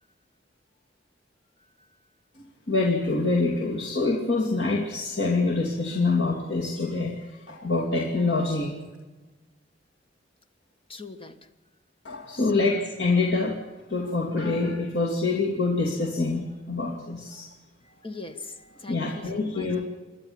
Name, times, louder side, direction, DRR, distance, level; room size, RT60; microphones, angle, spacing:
voice 1, 2.7-7.1 7.5-8.7 12.0-13.5 13.9-17.4 18.9-19.8, left 3 dB, 70° left, -1 dB, 2.7 m, -25 dB
voice 2, 10.9-11.3 12.3-12.7 18.0-19.7, left 3 dB, 30° left, 9 dB, 1.5 m, -41 dB
28.0 x 12.0 x 8.8 m, 1.2 s
head